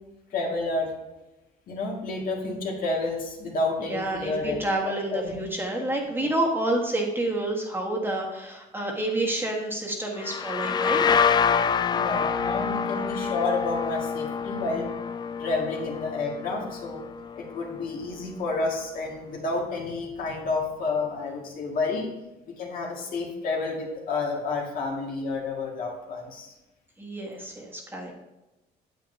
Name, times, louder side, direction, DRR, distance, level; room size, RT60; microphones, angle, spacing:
voice 1, 0.3-0.9 1.7-4.6 5.1-5.4 11.9-14.9 15.4-17.0 17.4-22.1 22.5-26.5, left 3 dB, 55° left, -1 dB, 2.0 m, -30 dB
voice 2, 3.8-11.0 27.0-28.1, right 1 dB, 15° right, -1 dB, 1.5 m, -29 dB
sound 1, 10.2-17.7, left 6 dB, 25° left, 0.3 m, -27 dB
8.9 x 7.6 x 2.7 m, 1.0 s
cardioid pair, 110°, 17 cm